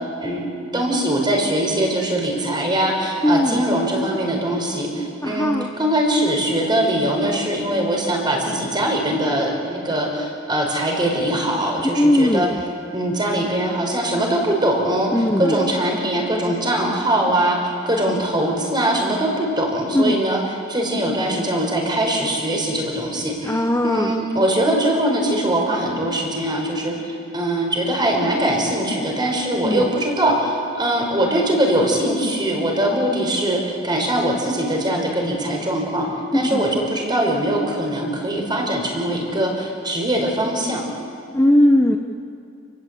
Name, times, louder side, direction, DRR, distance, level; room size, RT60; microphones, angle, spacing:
voice 1, 0.2-12.5 12.9-17.6 17.8-20.4 20.7-36.1 36.3-40.8, right 1 dB, 20° right, 0 dB, 5.2 m, -22 dB
voice 2, 3.2-3.6 5.2-5.7 11.8-12.5 15.1-15.6 19.9-20.1 23.4-24.2 29.6-29.9 36.5-36.6 41.3-42.0, left 1 dB, 15° left, 3 dB, 0.8 m, -18 dB
29.0 x 20.0 x 8.4 m, 2.6 s
head